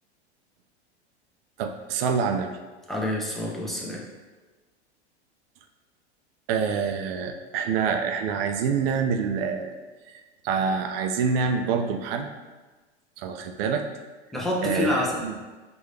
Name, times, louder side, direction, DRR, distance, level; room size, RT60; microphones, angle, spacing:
voice 1, 1.6-2.5 6.5-9.8 10.4-12.3 13.2-13.8 14.6-15.3, right 6 dB, 55° right, 5 dB, 0.6 m, -26 dB
voice 2, 2.9-4.1 14.3-15.2, left 1 dB, ahead, -4 dB, 0.7 m, -27 dB
4.9 x 2.6 x 3.2 m, 1.3 s
hypercardioid pair, 100°, 34 cm